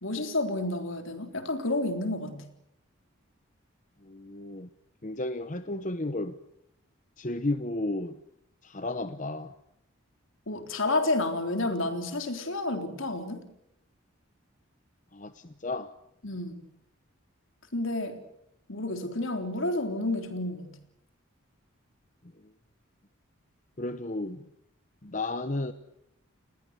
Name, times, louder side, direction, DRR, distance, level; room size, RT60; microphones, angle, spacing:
voice 1, 0.0-2.4 10.5-13.4 16.2-16.6 17.7-18.2 18.7-20.7, left 2 dB, 65° left, 3.6 m, -30 dB
voice 2, 4.0-4.7 5.0-6.4 7.2-8.2 8.6-9.5 15.1-15.9 23.8-24.4 25.0-25.7, left 2 dB, 35° left, 1.0 m, -33 dB
29.5 x 21.0 x 8.1 m
head